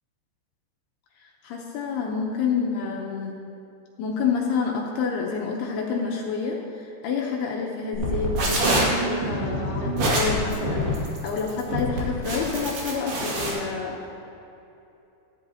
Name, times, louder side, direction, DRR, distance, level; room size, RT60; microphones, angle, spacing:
voice 1, 1.4-3.4 4.0-14.1, left 5 dB, 80° left, -2 dB, 2.4 m, -28 dB
sound 1, 7.9-13.5, right 1 dB, 60° right, 3.9 m, -25 dB
14.0 x 12.5 x 2.8 m, 2.9 s
omnidirectional pair, 5.6 m